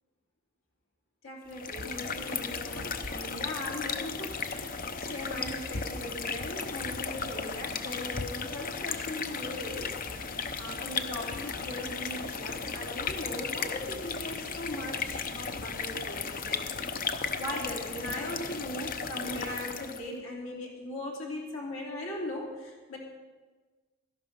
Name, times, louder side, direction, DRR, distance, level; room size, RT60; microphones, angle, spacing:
voice 1, 1.2-4.7 5.0-10.0 10.6-16.6 17.4-23.1, left 1 dB, 70° left, -1 dB, 3.1 m, -39 dB
sound 1, 1.5-20.1, left 5 dB, 40° left, 0.7 m, -35 dB
13.5 x 11.0 x 5.3 m, 1.3 s
head